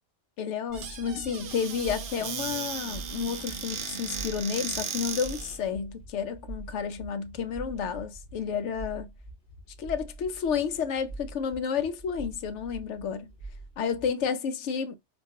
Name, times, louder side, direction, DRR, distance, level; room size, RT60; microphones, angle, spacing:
voice 1, 0.4-9.1 9.8-13.3 13.8-15.0, left 6 dB, 75° left, 0.9 m, -31 dB
sound 1, 0.7-14.3, right 2 dB, 55° left, 1.6 m, -45 dB
Squeak / Cupboard open or close, 0.7-5.6, right 6 dB, 60° right, 0.8 m, -36 dB
4.2 x 2.3 x 2.7 m
omnidirectional pair, 1.3 m